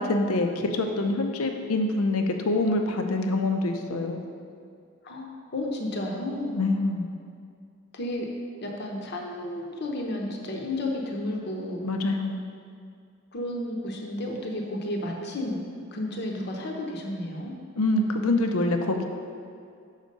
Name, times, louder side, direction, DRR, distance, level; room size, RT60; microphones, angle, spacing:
voice 1, 0.0-4.2 6.6-7.1 11.8-12.4 17.8-19.1, left 2 dB, 85° left, 5 dB, 0.6 m, -25 dB
voice 2, 5.0-6.6 7.9-8.3 8.6-11.8 13.3-15.6 15.9-17.5, left 1 dB, 50° left, 0 dB, 0.7 m, -32 dB
6.5 x 4.5 x 5.2 m, 2.3 s
head